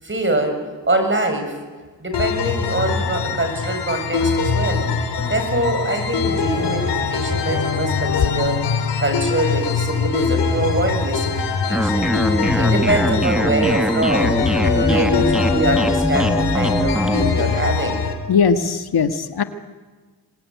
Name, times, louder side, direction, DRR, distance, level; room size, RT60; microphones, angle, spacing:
voice 1, 0.0-1.6 2.0-4.9 5.3-8.7 9.0-11.4 11.7-12.1 12.6-14.3 14.7-18.0, right 2 dB, 30° right, 5 dB, 7.9 m, -23 dB
sound 1, 2.1-18.1, left 5 dB, 80° left, 4.4 m, -23 dB
sound 2, 2.8-9.2, left 7 dB, 40° left, 2.0 m, -30 dB
sound 3, 11.7-17.3, equal, ahead, 1.9 m, -21 dB
voice 2, 18.3-19.4, left 6 dB, 65° left, 8 dB, 1.7 m, -19 dB
27.0 x 21.0 x 9.5 m, 1.4 s
cardioid pair, 65°, 41 cm